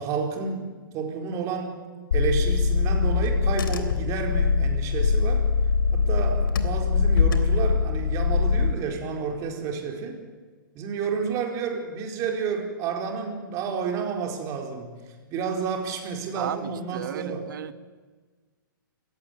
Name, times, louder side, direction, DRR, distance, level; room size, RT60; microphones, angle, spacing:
voice 1, 0.0-1.9 2.1-5.5 5.9-10.2 10.7-15.0 15.3-17.5, right 5 dB, 30° right, 3 dB, 4.6 m, -30 dB
Car / Engine, 2.1-8.7, left 5 dB, 75° left, 3.3 m, -22 dB
voice 2, 16.3-17.7, right 9 dB, 65° right, 11 dB, 1.9 m, -34 dB
29.0 x 17.0 x 9.3 m, 1.4 s
hypercardioid pair, 150°, 12 cm